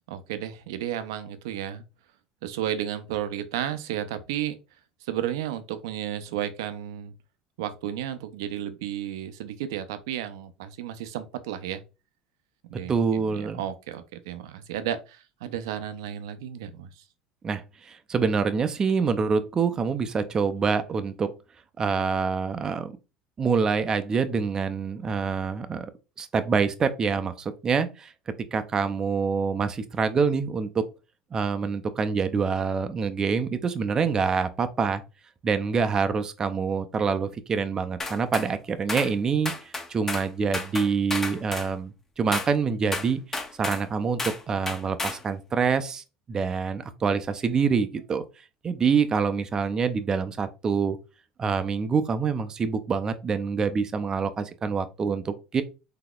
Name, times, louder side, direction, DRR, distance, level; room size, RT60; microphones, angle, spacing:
voice 1, 0.1-1.8 2.4-4.6 5.0-7.1 7.6-11.8 12.7-17.0, right 11 dB, 85° right, 0.4 m, -33 dB
voice 2, 12.9-13.6 17.4-21.3 21.8-22.9 23.4-25.9 26.2-28.1 28.5-30.8 31.3-35.0 35.4-43.2 43.6-44.2 44.5-48.2 48.6-51.0 51.4-55.6, right 5 dB, 30° right, 0.4 m, -26 dB
sound 1, 38.0-38.5 38.9-39.1 39.4-40.3 40.5-41.7 42.3-42.5 42.9-43.8 44.2-44.4 44.7-45.2, left 3 dB, 15° left, 0.6 m, -32 dB
3.9 x 2.8 x 2.3 m
supercardioid pair, 100°, 2 cm